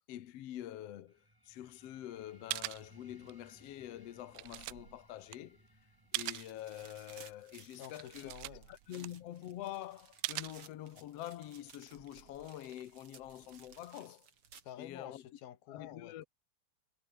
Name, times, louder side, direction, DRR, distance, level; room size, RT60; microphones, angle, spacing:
voice 1, 0.1-5.7 6.1-8.3 8.7-14.3 14.8-15.2 15.7-16.2, left 12 dB, 65° left, 1.6 m, -46 dB
sound 1, 1.1-12.1, right 1 dB, 5° right, 5.5 m, -66 dB
sound 2, 2.2-2.3 2.5-3.5 3.9-6.6 7.0-7.1 7.6-7.7 7.9-9.6 10.2-11.2 11.7-13.9, right 24 dB, 90° right, 2.4 m, -43 dB
sound 3, 6.1-14.9, right 6 dB, 40° right, 3.0 m, -59 dB
voice 2, 7.8-8.8 14.6-16.3, left 11 dB, 80° left, 3.6 m, -50 dB
omnidirectional pair, 4.3 m